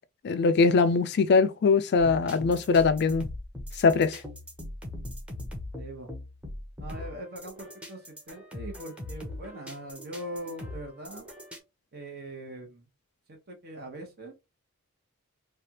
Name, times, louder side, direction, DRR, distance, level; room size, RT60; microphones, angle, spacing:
voice 1, 0.2-3.3 3.8-4.2, left 4 dB, 50° left, 0.3 m, -22 dB
sound 1, 2.0-11.6, left 1 dB, 5° right, 0.8 m, -40 dB
voice 2, 5.8-6.1 6.8-11.3 11.9-12.8 13.3-14.3, right 1 dB, 45° right, 0.9 m, -41 dB
3.2 x 2.3 x 2.8 m
head